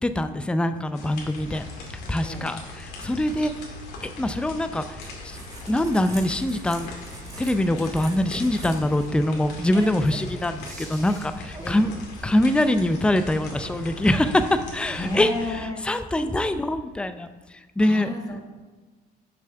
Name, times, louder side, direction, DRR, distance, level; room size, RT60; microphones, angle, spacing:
voice 1, 0.0-1.6 2.1-2.6 3.0-3.5 4.0-5.0 5.2-6.9 7.4-11.9 12.2-15.3 15.9-17.3 17.8-18.1, left 1 dB, 5° left, 9 dB, 0.5 m, -23 dB
sound 1, 0.9-15.5, left 2 dB, 80° left, 2.2 m, -40 dB
voice 2, 2.2-2.6 11.6-11.9 14.9-15.8 17.8-18.4, left 2 dB, 20° left, 2 dB, 1.3 m, -32 dB
sound 2, 5.0-12.3, right 2 dB, 20° right, 1.7 m, -44 dB
7.0 x 6.2 x 5.8 m, 1.3 s
cardioid pair, 110°, 17 cm